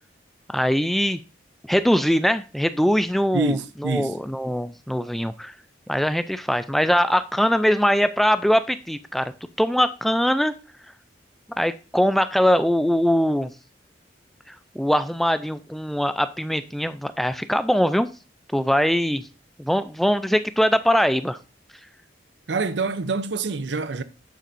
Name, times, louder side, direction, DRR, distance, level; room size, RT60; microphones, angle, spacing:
voice 1, 0.5-1.2 1.7-3.6 3.8-5.5 5.9-9.3 9.6-10.5 11.6-13.5 14.5-18.1 18.5-19.2 19.6-21.4, equal, ahead, 0.3 m, -22 dB
voice 2, 3.3-4.1 22.5-24.0, right 3 dB, 75° right, 0.6 m, -26 dB
9.1 x 6.8 x 2.6 m
head